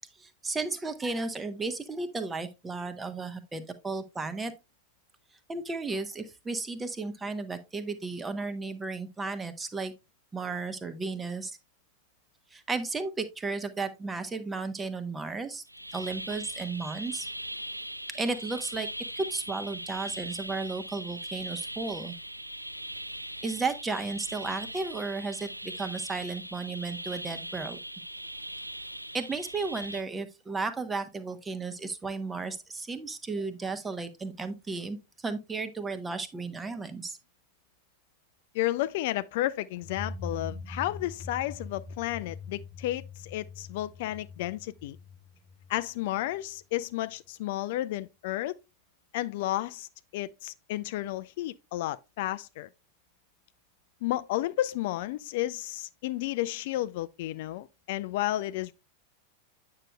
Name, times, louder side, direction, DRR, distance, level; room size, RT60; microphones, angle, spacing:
voice 1, 0.2-4.5 5.5-9.9 10.3-11.6 12.5-15.6 15.9-17.3 18.1-18.9 19.2-22.2 23.4-27.8 29.1-37.2, right 3 dB, 15° right, 0.8 m, -34 dB
sound 1, 15.7-30.0, right 1 dB, 85° right, 0.3 m, -40 dB
voice 2, 38.5-45.0 45.7-48.5 49.1-52.7 54.0-58.7, left 15 dB, 50° left, 0.3 m, -32 dB
sound 2, 39.8-46.4, left 3 dB, 20° left, 0.7 m, -43 dB
8.7 x 6.4 x 2.2 m
figure-of-eight pair, 90°, 0 cm